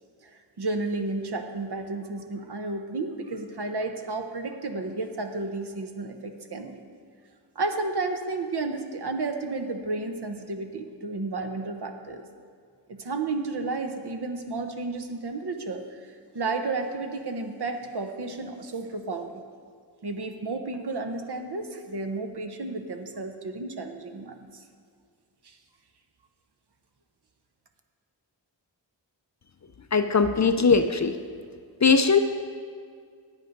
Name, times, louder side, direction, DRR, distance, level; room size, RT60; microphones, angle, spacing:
voice 1, 0.3-6.9 7.5-12.2 12.9-19.4 20.0-24.6 25.4-25.6, right 3 dB, 60° right, 6 dB, 0.9 m, -32 dB
voice 2, 29.9-31.2 31.8-32.2, left 5 dB, 40° left, 8 dB, 0.5 m, -20 dB
9.4 x 8.4 x 5.2 m, 2.2 s
wide cardioid pair, 85°, 46 cm